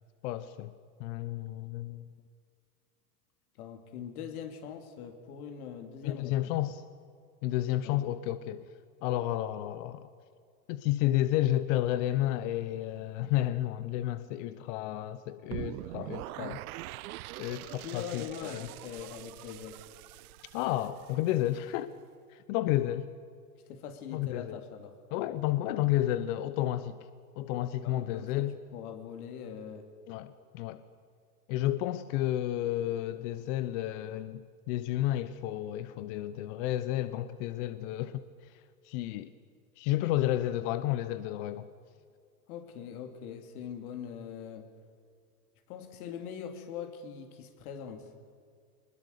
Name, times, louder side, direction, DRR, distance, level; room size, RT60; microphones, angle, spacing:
voice 1, 0.2-0.7 1.0-2.1 6.0-6.8 7.4-8.6 9.0-10.1 10.7-16.6 17.4-18.7 20.5-21.9 22.3-23.1 24.1-24.6 25.1-27.0 27.4-28.6 30.1-30.8 31.5-38.2 38.8-39.3 39.8-41.7, left 14 dB, 50° left, 1.0 m, -31 dB
voice 2, 3.6-6.3 7.8-8.1 17.8-19.8 23.7-25.0 27.8-28.4 28.7-29.9 42.5-44.7 45.7-48.1, left 8 dB, 65° left, 3.0 m, -42 dB
sound 1, 15.5-21.5, right 18 dB, 65° right, 0.6 m, -43 dB
22.5 x 20.5 x 6.8 m
hypercardioid pair, 110°, 47 cm